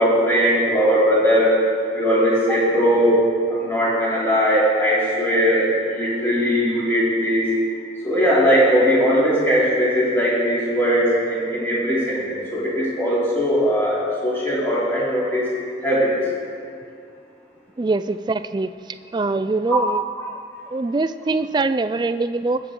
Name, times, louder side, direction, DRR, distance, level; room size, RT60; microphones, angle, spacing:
voice 1, 0.0-1.6 1.9-3.2 3.5-7.5 8.0-15.5 15.8-16.2 19.7-19.8, equal, 15° left, -7 dB, 2.9 m, -19 dB
voice 2, 17.8-18.7 19.1-20.0 20.7-22.6, right 3 dB, 25° right, 12 dB, 0.3 m, -23 dB
20.5 x 7.6 x 3.7 m, 2.3 s
head